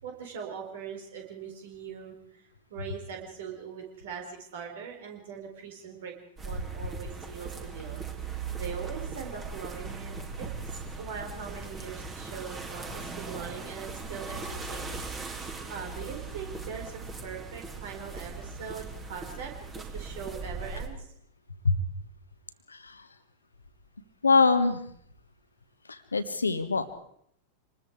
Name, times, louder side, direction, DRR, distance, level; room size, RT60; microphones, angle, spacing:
voice 1, 0.0-6.1 6.4-15.1 15.7-21.1, right 6 dB, 55° right, 3 dB, 4.4 m, -41 dB
sound 1, 6.4-20.9, right 4 dB, 20° right, 3.2 m, -39 dB
voice 2, 22.7-23.0 24.2-24.8 25.9-26.9, left 4 dB, 75° left, 10 dB, 1.4 m, -24 dB
26.5 x 20.5 x 4.9 m, 0.69 s
figure-of-eight pair, 90°, 0 cm